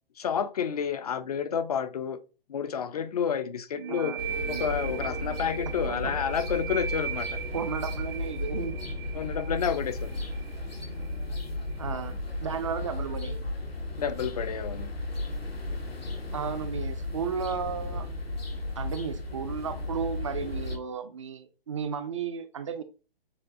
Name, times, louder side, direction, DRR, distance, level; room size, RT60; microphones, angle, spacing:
voice 1, 0.2-2.2 2.5-4.2 4.5-7.4 9.1-10.2 14.0-14.9, left 7 dB, 40° left, 0.4 m, -30 dB
sound 1, 3.7-11.2, right 7 dB, 60° right, 0.8 m, -38 dB
voice 2, 3.9-4.2 5.9-6.1 7.5-8.8 11.8-13.4 16.3-18.1 18.8-22.8, right 6 dB, 35° right, 0.4 m, -34 dB
sound 2, 4.2-20.8, left 2 dB, 90° left, 1.2 m, -35 dB
6.9 x 2.6 x 2.5 m
figure-of-eight pair, 135°, 30 cm